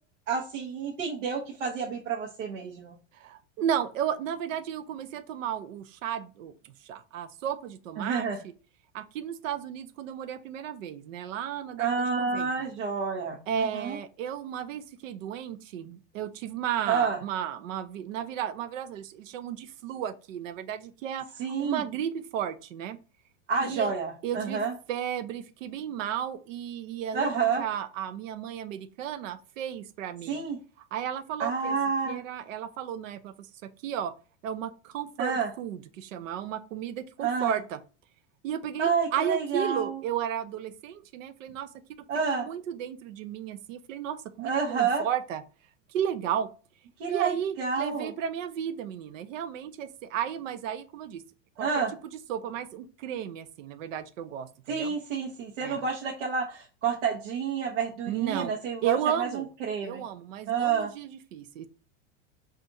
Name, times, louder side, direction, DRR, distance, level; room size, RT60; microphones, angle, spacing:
voice 1, 0.3-3.0 8.0-8.4 11.8-14.0 16.9-17.2 21.4-21.8 23.5-24.7 27.1-27.6 30.3-30.6 31.4-32.2 35.2-35.5 37.2-37.6 38.8-40.0 42.1-42.5 44.4-45.0 47.0-48.1 51.6-51.9 54.7-60.0 60.5-60.9, right 6 dB, 75° right, -2 dB, 1.0 m, -29 dB
voice 2, 3.1-8.5 8.9-12.5 13.5-23.0 23.6-23.9 24.2-24.6 24.9-30.4 30.9-31.8 32.1-33.5 33.8-34.1 34.4-37.8 38.4-41.7 42.3-45.4 45.9-46.5 47.1-51.2 51.6-51.8 52.3-54.9 55.6-55.8 58.0-58.5 58.8-59.5 59.8-61.7, right 9 dB, 90° right, 11 dB, 0.6 m, -34 dB
5.5 x 2.5 x 2.6 m, 0.36 s
supercardioid pair, 155°, 38 cm